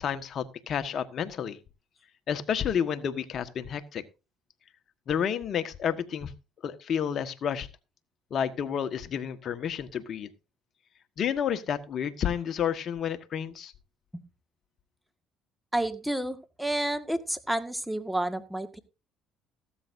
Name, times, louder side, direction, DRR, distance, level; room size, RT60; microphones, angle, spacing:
voice 1, 0.0-1.6 2.3-4.0 5.1-6.3 6.6-7.7 8.3-10.3 11.2-13.7, left 8 dB, 55° left, 10 dB, 1.4 m, -30 dB
voice 2, 15.7-18.8, right 1 dB, 5° right, 9 dB, 1.8 m, -30 dB
15.0 x 13.0 x 2.7 m, 0.28 s
supercardioid pair, 80°, 0 cm